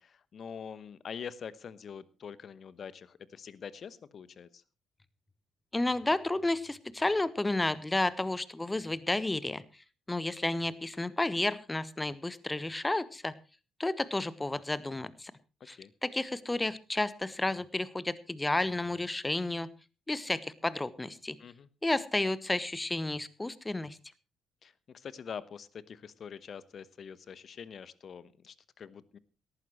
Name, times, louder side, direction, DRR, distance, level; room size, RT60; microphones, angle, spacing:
voice 1, 0.0-4.6 15.8-15.9 21.4-21.7 24.6-29.2, left 7 dB, 45° left, 18 dB, 1.0 m, -45 dB
voice 2, 5.7-9.6 10.1-13.3 13.8-15.3 15.7-15.8 16.0-19.7 20.1-21.4 21.8-24.0, left 2 dB, 15° left, 17 dB, 1.2 m, -31 dB
18.0 x 14.0 x 3.1 m, 0.32 s
figure-of-eight pair, 45°, 0 cm